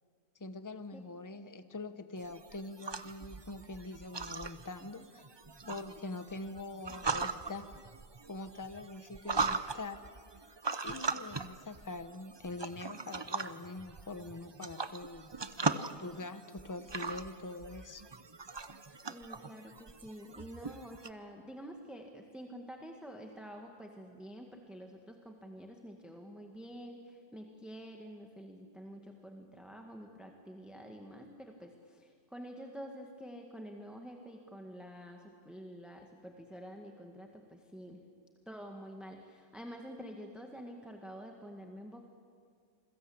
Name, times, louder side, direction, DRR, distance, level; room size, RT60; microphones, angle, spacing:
voice 1, 0.4-5.2 5.6-7.8 8.3-10.0 10.4-10.6 10.8-15.3 15.6-18.0, left 2 dB, 15° left, 10 dB, 0.9 m, -44 dB
sound 1, 2.2-21.1, right 4 dB, 30° right, 0.4 m, -39 dB
voice 2, 19.1-38.0 38.5-42.1, equal, ahead, 2 dB, 1.8 m, -48 dB
27.5 x 21.5 x 8.7 m, 2.2 s
omnidirectional pair, 1.6 m